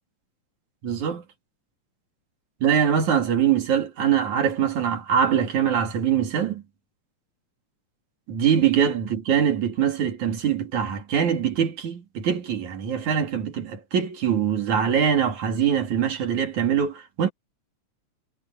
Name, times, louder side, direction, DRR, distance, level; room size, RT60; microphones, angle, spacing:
voice 1, 0.8-1.2 2.6-6.6 8.3-17.3, right 8 dB, 85° right, 4.1 m, -23 dB
omnidirectional pair, 3.3 m